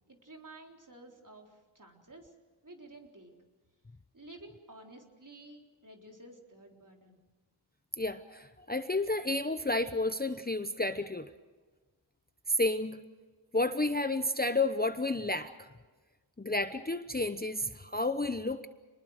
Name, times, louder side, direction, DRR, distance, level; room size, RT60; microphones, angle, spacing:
voice 1, 0.1-2.3 2.6-3.4 4.1-7.2, right 2 dB, 40° right, 1 dB, 4.0 m, -52 dB
voice 2, 8.0-11.3 12.5-13.0 13.5-15.7 16.4-18.7, left 2 dB, 20° left, 9 dB, 0.8 m, -31 dB
27.5 x 20.5 x 6.5 m, 1.3 s
wide cardioid pair, 75°, 48 cm